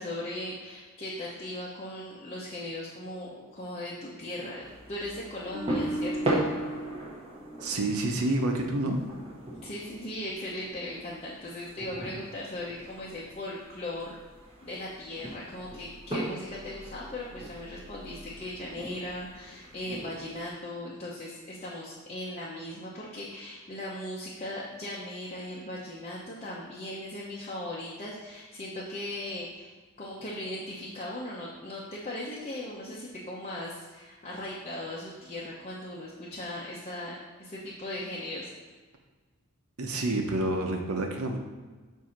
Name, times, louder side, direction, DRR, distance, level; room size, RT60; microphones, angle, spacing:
voice 1, 0.0-6.4 9.6-14.2 14.6-29.7 30.0-38.5, left 1 dB, 30° left, -6 dB, 0.8 m, -38 dB
sound 1, 4.6-20.5, right 1 dB, 25° right, 1.1 m, -39 dB
sound 2, 5.5-8.7 9.1-9.3, right 1 dB, 65° right, 1.3 m, -37 dB
voice 2, 7.6-9.0 39.8-41.4, right 2 dB, 85° right, 3 dB, 0.9 m, -28 dB
7.7 x 2.8 x 5.8 m, 1.4 s
head